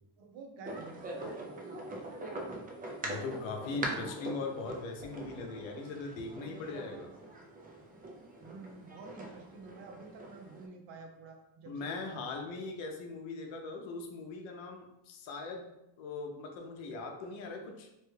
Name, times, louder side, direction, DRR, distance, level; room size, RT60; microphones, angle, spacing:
voice 1, 0.2-1.6 3.8-4.1 8.4-12.2, right 3 dB, 75° right, 2 dB, 0.8 m, -50 dB
sound 1, 0.6-10.6, right 1 dB, 20° right, 0.3 m, -43 dB
voice 2, 3.0-7.1 11.7-15.7 16.0-17.9, left 3 dB, 90° left, 3 dB, 0.7 m, -40 dB
3.0 x 2.3 x 3.1 m, 0.88 s
cardioid pair, 125°, 46 cm